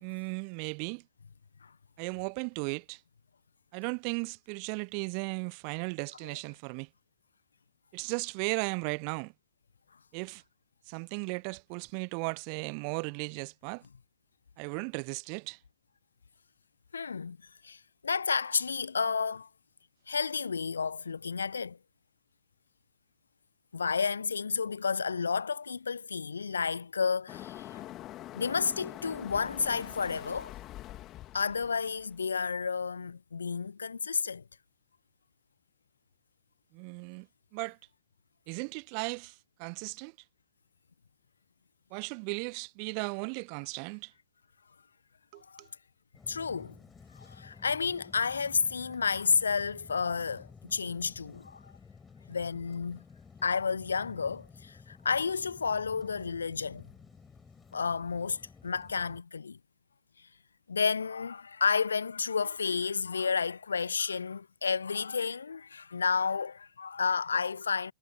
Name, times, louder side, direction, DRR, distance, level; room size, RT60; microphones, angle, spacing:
voice 1, 0.0-1.0 2.0-3.0 3.7-6.9 7.9-9.3 10.1-10.4 10.9-13.8 14.6-15.6 36.7-37.3 37.5-37.8 38.5-40.1 41.9-44.1 45.3-45.7, right 40 dB or more, 45° right, 0.6 m, -36 dB
voice 2, 16.9-17.4 17.6-19.5 20.1-21.8 23.7-27.8 28.3-30.5 31.3-34.4 45.5-45.6 46.3-46.7 47.2-51.7 52.3-53.0 53.4-56.8 57.7-59.6 60.7-67.9, left 5 dB, 75° left, 1.0 m, -31 dB
sound 1, 27.3-32.2, left 14 dB, 35° left, 2.6 m, -45 dB
sound 2, 46.1-59.2, left 5 dB, 15° left, 5.8 m, -54 dB
figure-of-eight pair, 90°, 0 cm